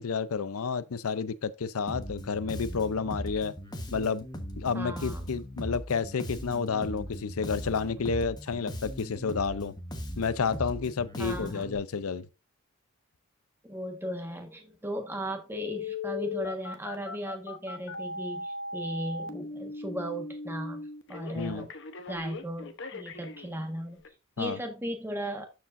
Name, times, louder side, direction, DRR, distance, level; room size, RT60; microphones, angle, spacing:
voice 1, 0.0-3.5 3.9-4.3 4.6-9.7 10.2-12.3 21.3-21.7 24.4-24.6, left 5 dB, 85° left, 0.6 m, -30 dB
Bass guitar, 1.9-11.8, equal, 20° left, 1.2 m, -39 dB
voice 2, 4.7-5.3 11.2-11.6 13.6-21.7 22.1-24.0 24.4-25.5, equal, 10° right, 1.4 m, -36 dB
Telephone, 15.5-23.5 24.0-24.1, left 3 dB, 55° left, 1.0 m, -38 dB
12.5 x 4.9 x 2.6 m
head